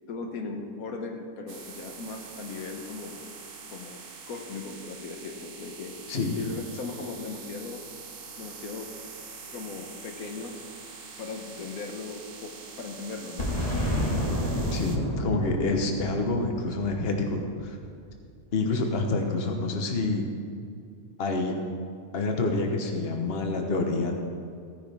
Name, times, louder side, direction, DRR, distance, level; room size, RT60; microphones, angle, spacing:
voice 1, 0.1-3.2 3.7-7.8 8.4-8.9 9.5-10.6 11.2-13.5, left 4 dB, 75° left, 3 dB, 1.4 m, -38 dB
sound 1, 1.5-15.0, right 5 dB, 45° right, 0.9 m, -44 dB
Boom, 13.4-18.1, equal, 25° left, 2.0 m, -30 dB
voice 2, 14.7-17.8 18.5-20.3 21.2-21.6 22.1-24.1, left 3 dB, 45° left, 3 dB, 1.3 m, -27 dB
16.0 x 9.7 x 3.5 m, 2.3 s
omnidirectional pair, 1.5 m